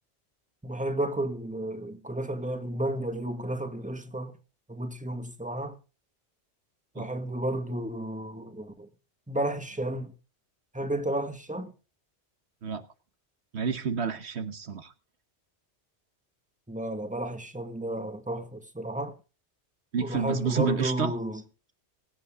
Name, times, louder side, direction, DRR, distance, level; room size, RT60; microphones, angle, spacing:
voice 1, 0.6-4.3 4.7-5.8 6.9-8.9 9.3-10.1 10.7-11.7 16.7-19.1 20.0-21.4, right 1 dB, 5° right, 1.7 m, -32 dB
voice 2, 13.5-14.9 19.9-21.1, right 6 dB, 75° right, 1.4 m, -30 dB
23.5 x 8.3 x 3.7 m
omnidirectional pair, 1.1 m